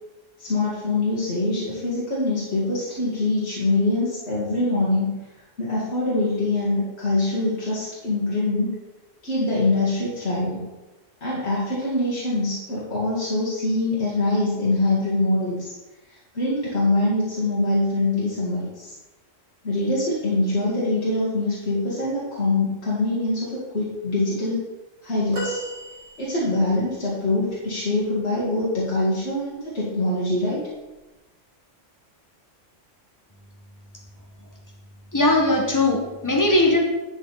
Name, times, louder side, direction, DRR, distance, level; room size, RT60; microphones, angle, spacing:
voice 1, 0.4-5.1 5.6-8.7 9.2-10.7 11.2-15.6 16.3-18.9 19.6-24.7 25.0-25.6 26.2-30.6, left 2 dB, 60° left, -8 dB, 2.5 m, -24 dB
sound 1, 25.3-26.8 29.1-29.3 30.6-30.7, right 1 dB, 80° right, 2.4 m, -34 dB
voice 2, 35.1-36.8, left 2 dB, 15° left, 0 dB, 1.6 m, -19 dB
10.5 x 6.3 x 4.2 m, 1.1 s
omnidirectional pair, 1.3 m